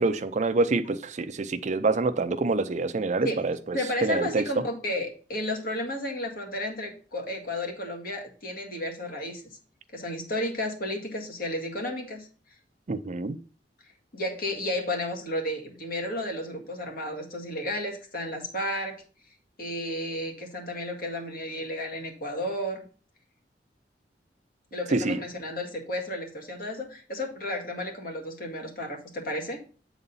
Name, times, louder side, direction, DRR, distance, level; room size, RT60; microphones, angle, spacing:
voice 1, 0.0-4.5 12.9-13.4 24.9-25.2, right 3 dB, 40° right, 0.5 m, -26 dB
voice 2, 3.7-9.6 9.9-12.3 14.1-19.0 19.6-22.9 24.7-29.6, left 1 dB, 55° left, 1.8 m, -32 dB
7.8 x 4.0 x 5.4 m
head